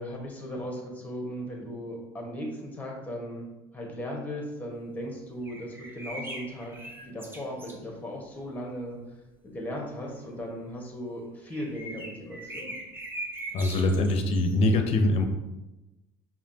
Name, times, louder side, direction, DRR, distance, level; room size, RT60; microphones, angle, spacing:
voice 1, 0.0-3.4 3.7-9.0 9.4-12.7, equal, 10° left, -1 dB, 1.3 m, -37 dB
sound 1, 5.4-7.8 11.5-14.7, right 1 dB, 15° right, 0.8 m, -40 dB
voice 2, 13.5-15.2, left 2 dB, 55° left, 6 dB, 0.6 m, -23 dB
4.9 x 2.8 x 2.8 m, 1.0 s
supercardioid pair, 85°, 13 cm